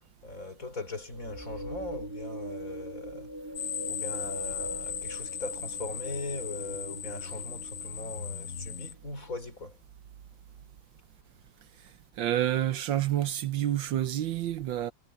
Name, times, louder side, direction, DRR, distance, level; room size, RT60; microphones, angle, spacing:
voice 1, 0.2-3.3 3.9-9.8, left 2 dB, 40° left, 5.0 m, -40 dB
sound 1, 1.1-8.4, equal, 10° right, 3.0 m, -42 dB
sound 2, 3.5-8.9, left 8 dB, 80° left, 2.0 m, -37 dB
voice 2, 12.2-14.9, right 12 dB, 70° right, 1.5 m, -28 dB
omnidirectional pair, 2.2 m